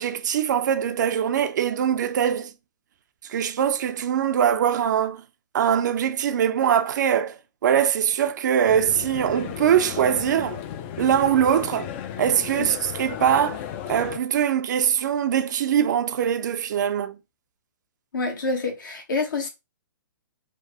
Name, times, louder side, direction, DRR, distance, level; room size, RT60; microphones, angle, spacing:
voice 1, 0.0-2.5 3.3-5.2 5.5-7.3 7.6-10.6 11.0-11.9 12.2-13.6 13.9-17.2, right 9 dB, 65° right, 0.4 m, -22 dB
sound 1, 8.7-14.2, left 10 dB, 35° left, 0.3 m, -35 dB
voice 2, 18.1-19.5, left 3 dB, 75° left, 1.1 m, -27 dB
3.2 x 2.0 x 2.8 m
hypercardioid pair, 135°, 11 cm